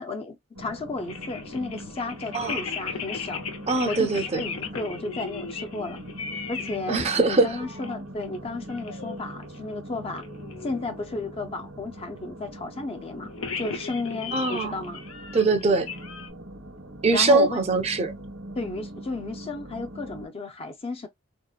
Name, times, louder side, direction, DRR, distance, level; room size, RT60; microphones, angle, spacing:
voice 1, 0.0-3.4 3.9-6.0 6.5-7.0 7.3-10.2 10.6-13.3 13.6-15.0 17.1-17.6 18.5-21.1, left 2 dB, 30° left, 0.5 m, -33 dB
sound 1, 0.5-20.3, right 1 dB, 80° right, 1.1 m, -42 dB
sound 2, 1.0-6.8 7.0-8.0 8.2-8.4 8.7-9.2 9.4-9.6 10.0-11.3 13.2-16.3, left 5 dB, 85° left, 0.6 m, -37 dB
voice 2, 3.7-4.4 6.9-7.5 14.3-14.8 15.3-15.9 17.0-18.1, right 3 dB, 30° right, 0.5 m, -22 dB
2.9 x 2.1 x 2.3 m
head